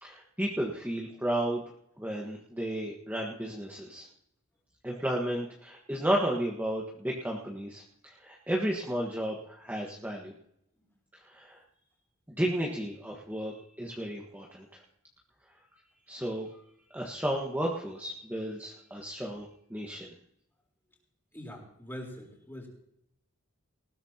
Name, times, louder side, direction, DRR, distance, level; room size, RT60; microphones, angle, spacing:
voice 1, 0.0-1.6 2.0-4.1 4.8-10.3 11.2-11.6 12.3-14.8 16.1-16.5 16.9-19.4 19.7-20.1, right 1 dB, 10° right, -2 dB, 1.4 m, -33 dB
voice 2, 21.3-22.7, left 1 dB, 10° left, -1 dB, 3.9 m, -43 dB
19.5 x 15.5 x 2.9 m, 0.76 s
head